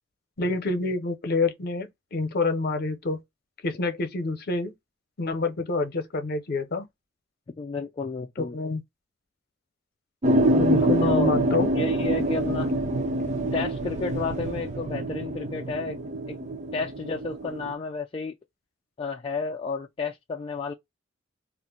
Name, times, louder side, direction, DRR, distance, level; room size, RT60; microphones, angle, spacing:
voice 1, 0.4-3.2 3.6-4.7 5.2-6.9 8.4-8.8 10.5-11.7, left 3 dB, 55° left, 0.7 m, -27 dB
voice 2, 7.6-8.6 11.0-11.3 11.7-12.7 13.5-16.0 16.3-16.4 16.7-18.3 19.0-20.7, left 4 dB, 30° left, 0.3 m, -31 dB
sound 1, 10.2-17.7, right 1 dB, 35° right, 0.6 m, -25 dB
2.5 x 2.1 x 3.7 m
head